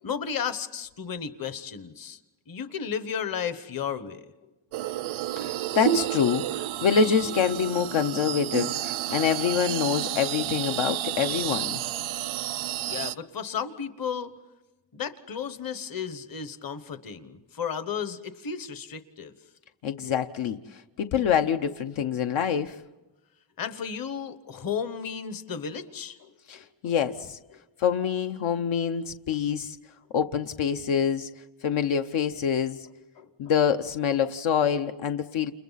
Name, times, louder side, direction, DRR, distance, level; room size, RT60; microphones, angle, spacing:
voice 1, 0.0-2.2 2.5-4.3 12.9-14.3 14.9-19.3 23.6-26.9 33.2-33.3, left 7 dB, 45° left, 11 dB, 1.2 m, -34 dB
sound 1, 4.7-13.1, right 12 dB, 80° right, 0.7 m, -30 dB
voice 2, 5.4-11.8 19.8-22.8 26.5-27.4 27.8-29.8 30.1-31.3 31.6-32.8 33.4-35.5, left 7 dB, 80° left, 7 dB, 1.0 m, -26 dB
29.5 x 29.5 x 4.1 m, 1.1 s
wide cardioid pair, 165°, 47 cm